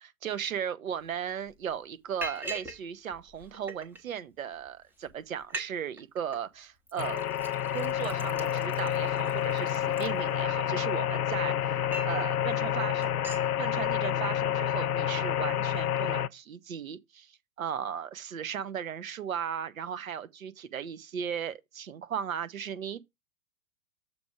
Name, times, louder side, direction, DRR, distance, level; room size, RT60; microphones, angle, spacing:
voice 1, 0.0-7.3 7.7-13.1 13.6-17.3 17.6-23.0, right 8 dB, 65° right, 1.0 m, -36 dB
Liquid, 1.0-1.1 1.5-1.7 2.2-2.8 3.1-4.0 4.7-4.8 5.1-5.2 5.4-5.7 6.0-6.4 6.9-10.7 11.2-12.2 12.6-12.8 13.0-13.5, right 1 dB, 5° right, 0.7 m, -42 dB
sound 1, 7.0-16.3, left 10 dB, 80° left, 0.5 m, -29 dB
7.0 x 4.6 x 4.8 m
figure-of-eight pair, 105°, 44 cm